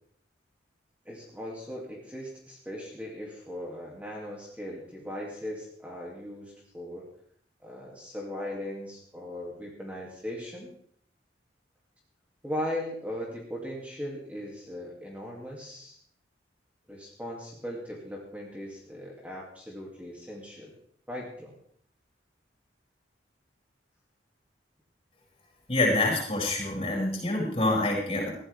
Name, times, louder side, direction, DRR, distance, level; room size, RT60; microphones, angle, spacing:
voice 1, 1.0-7.1 7.6-10.7 12.4-16.0 16.9-20.7 21.1-21.5, left 1 dB, 10° right, -3 dB, 2.8 m, -38 dB
voice 2, 25.7-28.3, left 2 dB, 30° left, -2 dB, 7.9 m, -26 dB
20.5 x 15.0 x 3.6 m, 0.63 s
head